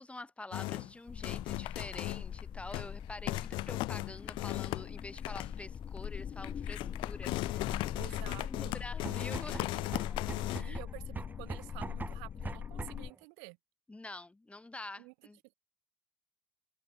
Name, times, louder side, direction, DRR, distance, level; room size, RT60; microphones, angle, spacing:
voice 1, 0.0-8.2 8.4-9.7 10.4-10.8 13.9-15.4, left 2 dB, 15° left, 4.6 m, -47 dB
sound 1, 0.5-0.9 1.2-2.4 2.7-2.9 3.3-5.6 6.0-6.1 6.4-10.6, left 20 dB, 65° left, 1.2 m, -37 dB
sound 2, 1.1-13.1, left 8 dB, 40° left, 1.8 m, -42 dB
voice 2, 8.0-8.7 9.1-9.9 10.6-13.6 15.0-15.1, right 40 dB or more, 70° right, 3.5 m, -50 dB
sound 3, 8.9-13.1, right 3 dB, 20° right, 7.1 m, -43 dB
hypercardioid pair, 70°, 9 cm